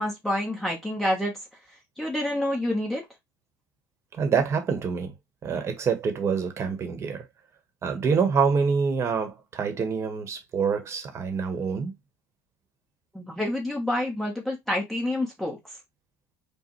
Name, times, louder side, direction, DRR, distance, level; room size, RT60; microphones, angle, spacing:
voice 1, 0.0-1.4 2.0-3.0 13.1-15.6, left 1 dB, 5° left, 1.3 m, -28 dB
voice 2, 4.2-5.1 5.4-7.2 7.8-11.9, right 5 dB, 40° right, 1.4 m, -26 dB
5.1 x 2.5 x 3.2 m
supercardioid pair, 100°, 8 cm